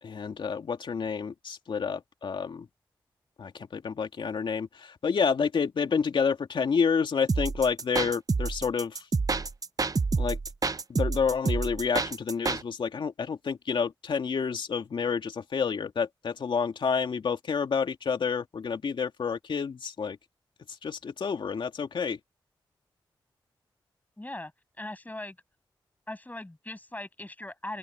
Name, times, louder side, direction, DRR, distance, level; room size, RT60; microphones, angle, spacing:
voice 1, 0.0-2.7 3.4-9.0 10.2-10.4 10.9-20.2 20.8-22.2, left 6 dB, 70° left, 2.7 m, -29 dB
sound 1, 7.3-12.6, right 4 dB, 45° right, 1.1 m, -28 dB
voice 2, 24.2-24.5 24.8-25.4 26.1-27.8, left 1 dB, 20° left, 7.5 m, -39 dB
open air
cardioid pair, 45°, 9 cm